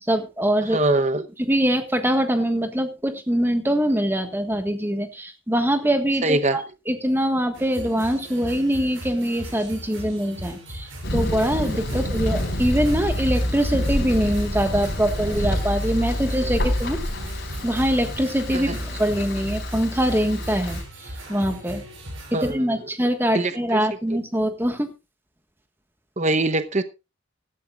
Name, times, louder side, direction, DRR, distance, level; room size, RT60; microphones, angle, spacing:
voice 1, 0.1-0.8 1.5-17.0 17.6-21.8 22.4-24.9, equal, 10° right, 7 dB, 1.5 m, -23 dB
voice 2, 0.7-1.3 6.2-6.6 11.9-12.0 18.5-18.8 22.3-22.7 23.3-23.8 24.1-24.2 26.2-26.8, right 2 dB, 35° right, 10 dB, 0.9 m, -23 dB
sound 1, 7.5-22.5, right 1 dB, 65° right, 6.3 m, -39 dB
Thunder, 11.0-20.8, left 1 dB, 50° left, 4.2 m, -27 dB
16.5 x 13.5 x 2.4 m, 0.27 s
head